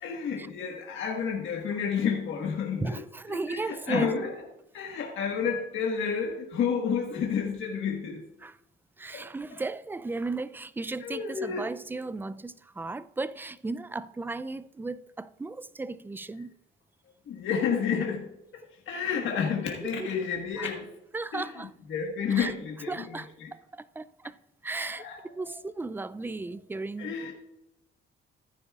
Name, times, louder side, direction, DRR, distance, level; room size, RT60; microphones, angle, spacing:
voice 1, 0.0-3.0 3.3-4.3 4.7-8.2 9.1-9.3 11.0-11.7 17.3-18.3 18.5-20.9 21.3-21.5 21.9-23.5 24.8-25.2 27.0-27.3, left 6 dB, 75° left, 1.5 m, -30 dB
voice 2, 2.8-4.1 8.4-8.6 9.0-16.5 19.8-20.1 20.6-20.7 21.1-21.7 22.3-22.5 22.9-24.4 24.6-27.2, right 3 dB, 10° right, 0.4 m, -35 dB
14.5 x 9.3 x 2.4 m
cardioid pair, 90°, 20 cm